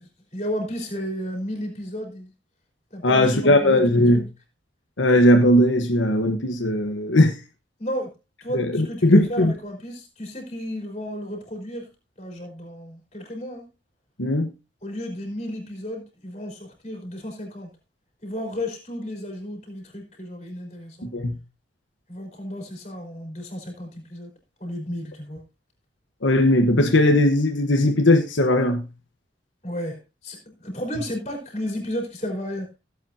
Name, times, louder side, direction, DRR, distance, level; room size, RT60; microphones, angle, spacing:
voice 1, 0.0-2.3 2.9-4.3 7.8-8.1 8.4-11.9 12.2-13.6 14.8-17.7 18.2-21.1 22.1-24.3 24.6-25.4 29.6-30.0 30.2-32.7, equal, 35° left, 4.4 m, -33 dB
voice 2, 3.0-4.2 5.0-7.4 8.5-9.5 14.2-14.5 21.0-21.4 26.2-28.8, left 1 dB, 85° left, 1.3 m, -18 dB
16.5 x 8.4 x 2.8 m
head